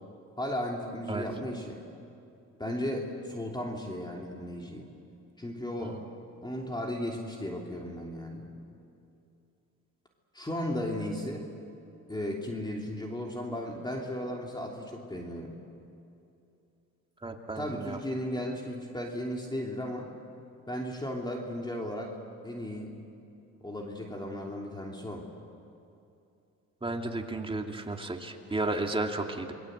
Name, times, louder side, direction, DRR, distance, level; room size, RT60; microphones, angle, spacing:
voice 1, 0.4-1.8 2.6-4.9 5.4-6.0 6.4-8.5 10.3-11.5 12.1-15.6 17.5-20.1 20.7-22.1 22.4-22.9 23.6-25.3, left 1 dB, 15° left, 0 dB, 3.1 m, -35 dB
voice 2, 17.2-18.0 26.8-29.5, right 2 dB, 20° right, 2 dB, 2.6 m, -33 dB
28.0 x 21.5 x 8.0 m, 2.7 s
cardioid pair, 90°, 30 cm